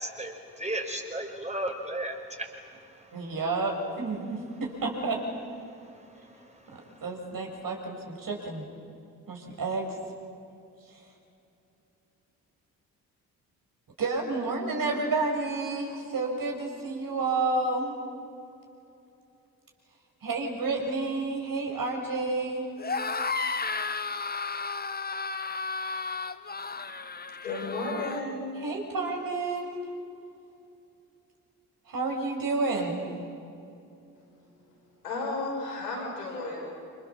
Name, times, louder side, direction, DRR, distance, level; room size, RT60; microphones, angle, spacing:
voice 1, 0.0-3.4 5.6-7.0, right 1 dB, 15° right, 3 dB, 5.3 m, -37 dB
voice 2, 3.1-5.2 6.7-8.6 9.3-9.9 14.0-18.0 20.2-22.7 28.6-29.9 31.9-33.1, right 3 dB, 45° right, 1 dB, 6.8 m, -30 dB
sound 1, 22.8-28.2, left 4 dB, 20° left, 1.4 m, -33 dB
voice 3, 27.4-28.4 35.0-36.6, left 2 dB, 80° left, -1 dB, 5.8 m, -33 dB
29.0 x 28.0 x 7.3 m, 2.6 s
figure-of-eight pair, 40°, 46 cm